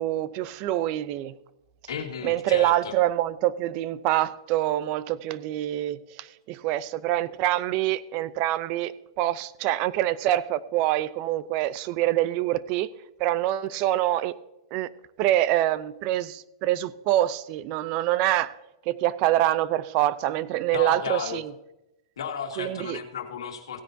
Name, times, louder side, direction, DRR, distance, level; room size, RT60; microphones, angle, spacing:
voice 1, 0.0-1.3 2.2-12.9 13.2-14.3 14.7-14.9 15.2-18.5 18.9-21.5 22.6-23.0, right 14 dB, 40° right, 0.5 m, -25 dB
voice 2, 1.9-2.9 20.7-21.4 22.2-23.8, left 7 dB, 90° left, 1.8 m, -34 dB
16.5 x 9.9 x 2.7 m
hypercardioid pair, 145°, 3 cm